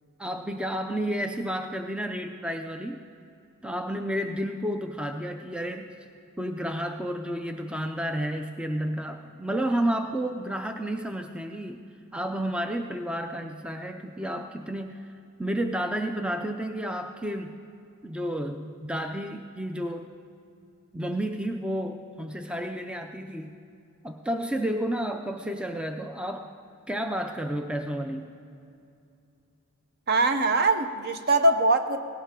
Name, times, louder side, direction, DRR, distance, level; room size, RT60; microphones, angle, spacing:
voice 1, 0.2-3.0 3.6-5.9 6.4-11.8 12.1-15.1 15.4-17.5 18.0-20.1 20.9-23.5 24.0-26.5 26.9-28.3, equal, 5° right, 5 dB, 0.4 m, -31 dB
voice 2, 30.1-32.0, right 2 dB, 45° right, 8 dB, 0.8 m, -22 dB
18.0 x 17.0 x 3.7 m, 2.6 s
head